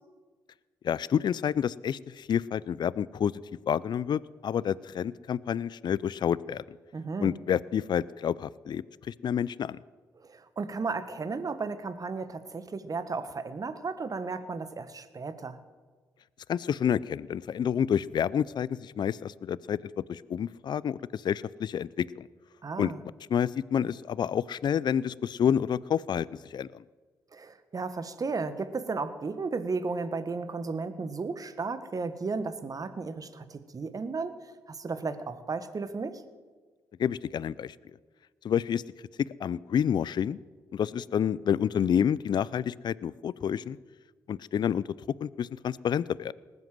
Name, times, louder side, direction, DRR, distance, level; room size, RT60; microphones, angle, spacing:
voice 1, 0.8-3.3 3.7-6.8 7.2-9.8 16.5-19.8 20.1-22.3 22.8-22.9 23.3-26.8 37.0-37.7 38.4-38.8 39.2-40.4 40.7-43.8 44.3-46.3, left 8 dB, 55° left, 20 dB, 0.5 m, -29 dB
voice 2, 6.9-7.4 10.2-15.6 22.6-23.0 27.3-36.2, right 4 dB, 40° right, 12 dB, 1.5 m, -34 dB
19.5 x 8.1 x 7.7 m, 1.4 s
hypercardioid pair, 45°, 9 cm